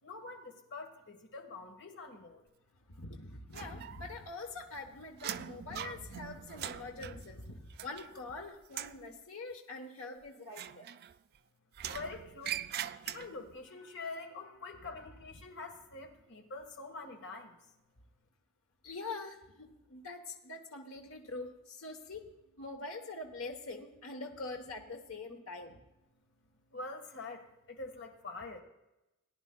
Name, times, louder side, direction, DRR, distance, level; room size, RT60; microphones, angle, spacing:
voice 1, 0.0-2.4 11.9-12.7 13.0-17.6 26.7-28.6, left 3 dB, 60° left, 4 dB, 1.5 m, -45 dB
voice 2, 2.9-10.9 18.8-25.8, left 3 dB, 75° left, 2 dB, 1.2 m, -44 dB
sound 1, 3.5-4.3 4.6-8.3 8.6-9.1 10.5-11.4 11.7-13.6, right 10 dB, 50° right, 0.3 m, -42 dB
18.5 x 10.5 x 2.3 m, 0.95 s
head